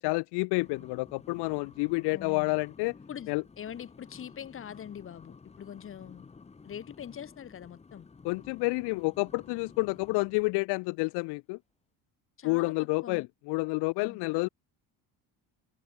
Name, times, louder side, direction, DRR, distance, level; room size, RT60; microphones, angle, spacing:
voice 1, 0.0-2.9 3.3-3.4 8.2-11.6 12.4-14.5, left 27 dB, 75° left, 0.8 m, -29 dB
sound 1, 0.6-10.6, left 4 dB, 15° left, 5.1 m, -53 dB
voice 2, 2.1-2.6 3.1-6.3 6.6-8.1 12.4-13.3 14.0-14.2, left 9 dB, 30° left, 5.3 m, -43 dB
cardioid pair, 175°, 40 cm